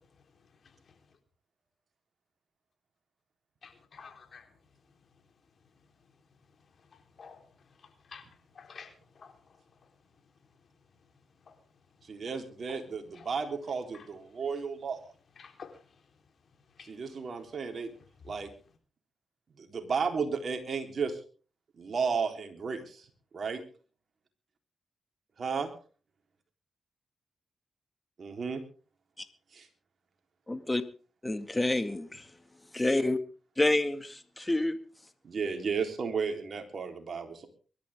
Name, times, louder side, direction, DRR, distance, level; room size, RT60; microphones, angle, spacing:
voice 1, 3.6-4.4 7.2-7.4 8.1-8.2 8.6-8.9 13.2-13.3 13.9-14.0 15.4-15.7 16.8-16.9, left 5 dB, 60° left, 6 dB, 3.9 m, -48 dB
voice 2, 12.1-15.0 16.9-17.9 18.3-18.5 19.6-21.2 21.8-23.0 23.3-23.6 25.4-25.7 28.2-28.6 29.5-29.6 35.2-37.5, right 5 dB, 60° right, 4 dB, 3.8 m, -33 dB
voice 3, 30.5-30.8 31.2-32.3 32.7-33.2 33.6-34.8, left 2 dB, 20° left, 10 dB, 2.1 m, -28 dB
23.5 x 12.5 x 3.7 m, 0.38 s
supercardioid pair, 45°, 0 cm